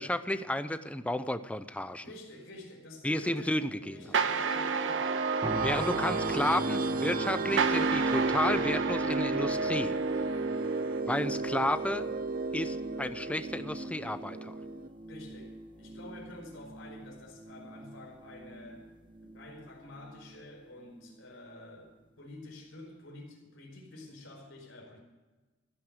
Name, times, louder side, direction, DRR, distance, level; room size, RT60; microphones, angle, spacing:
voice 1, 0.0-2.1 3.0-4.0 5.6-10.0 11.1-12.1 12.5-14.5, left 1 dB, 5° left, 11 dB, 0.6 m, -32 dB
voice 2, 2.0-3.6 3.9-5.9 15.0-18.9 19.2-25.0, left 1 dB, 65° left, -2 dB, 4.1 m, -49 dB
sound 1, 4.0-14.9, right 3 dB, 45° right, 0.5 m, -32 dB
sound 2, 4.1-11.0, right 6 dB, 65° right, 1.2 m, -34 dB
sound 3, 5.4-20.4 20.9-21.1, right 1 dB, 25° right, 1.3 m, -41 dB
14.5 x 11.0 x 6.5 m, 1.2 s
head